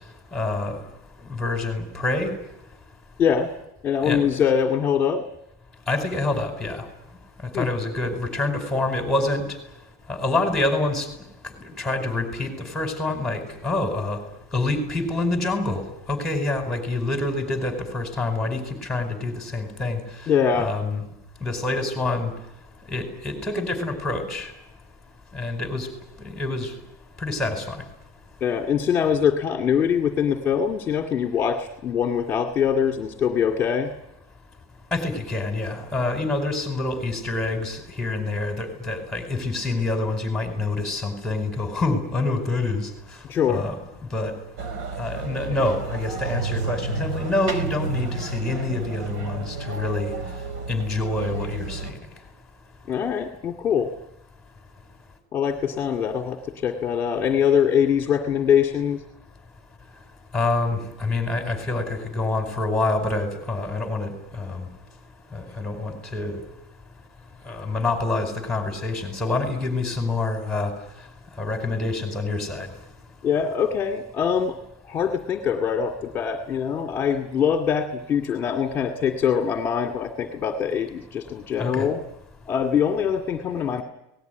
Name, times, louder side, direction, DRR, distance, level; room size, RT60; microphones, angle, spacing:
voice 1, 0.3-0.8 1.3-2.3 4.0-4.3 5.9-6.8 7.5-9.4 10.1-11.1 11.6-14.2 14.5-15.8 16.1-20.0 20.6-21.0 21.4-22.3 22.9-24.5 25.3-25.9 26.2-26.7 27.2-27.8 34.9-42.9 43.4-43.8 44.1-44.3 45.0-50.1 50.7-52.0 60.3-64.7 65.3-66.4 67.5-70.7 71.4-72.7 81.6-81.9, left 2 dB, 5° left, 4 dB, 4.9 m, -26 dB
voice 2, 3.8-5.2 7.5-7.7 20.3-20.7 28.4-33.9 43.3-43.7 52.9-53.9 55.3-59.0 73.2-74.6 74.9-82.0 82.5-83.8, left 7 dB, 25° left, 4 dB, 2.1 m, -23 dB
sound 1, 44.6-51.9, right 3 dB, 70° right, 4.5 m, -31 dB
26.5 x 19.5 x 9.4 m, 0.91 s
cardioid pair, 165°, 9 cm